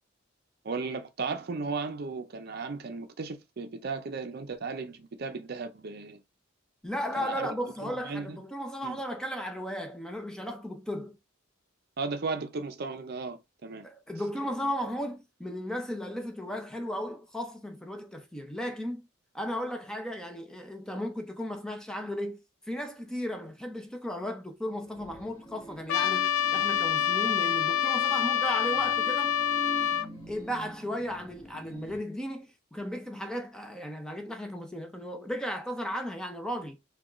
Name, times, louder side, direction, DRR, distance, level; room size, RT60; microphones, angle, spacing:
voice 1, 0.6-6.2 7.2-7.5 7.8-8.4 8.8-9.0 12.0-13.9, right 4 dB, 50° right, 0.5 m, -35 dB
voice 2, 6.8-11.2 13.8-19.0 19.3-22.4 22.7-29.3 30.3-36.9, equal, 5° left, 0.5 m, -35 dB
sound 1, 24.6-32.0, equal, 20° left, 1.5 m, -45 dB
Trumpet, 25.9-30.1, left 9 dB, 85° left, 0.3 m, -26 dB
4.7 x 2.3 x 3.0 m
head